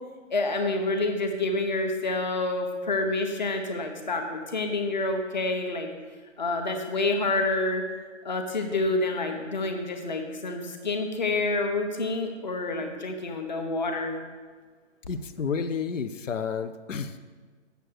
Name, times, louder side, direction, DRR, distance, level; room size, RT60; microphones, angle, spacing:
voice 1, 0.3-5.9 6.4-7.8 8.2-14.2, left 2 dB, 35° left, 5 dB, 1.0 m, -28 dB
voice 2, 15.1-17.2, left 6 dB, 85° left, 10 dB, 0.6 m, -31 dB
8.2 x 6.7 x 6.2 m, 1.5 s
hypercardioid pair, 175°, 37 cm